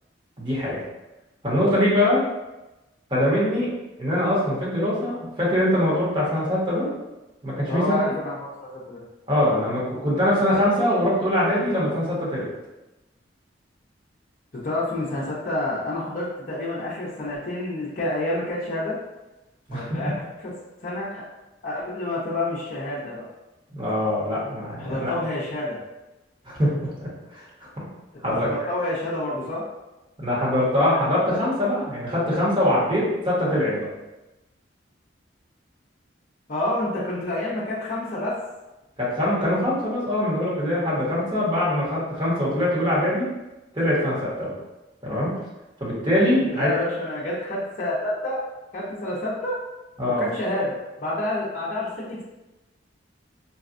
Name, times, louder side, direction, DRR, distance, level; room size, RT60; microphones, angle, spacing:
voice 1, 0.4-0.8 1.4-2.2 3.1-3.7 4.0-6.9 7.4-8.0 9.3-12.5 19.7-20.0 23.7-25.1 26.4-27.8 28.2-28.5 30.2-33.9 39.0-43.3 43.7-44.5 45.0-45.3 45.8-46.7 50.0-50.3, left 1 dB, 25° right, -7 dB, 1.1 m, -23 dB
voice 2, 7.7-9.0 14.5-19.0 19.7-20.1 20.4-20.5 20.8-21.2 21.6-23.3 24.8-25.8 28.3-29.6 36.5-38.4 46.5-48.4 48.7-49.6 50.2-52.2, left 1 dB, 45° left, -8 dB, 0.6 m, -28 dB
4.0 x 2.3 x 2.5 m, 1.0 s
head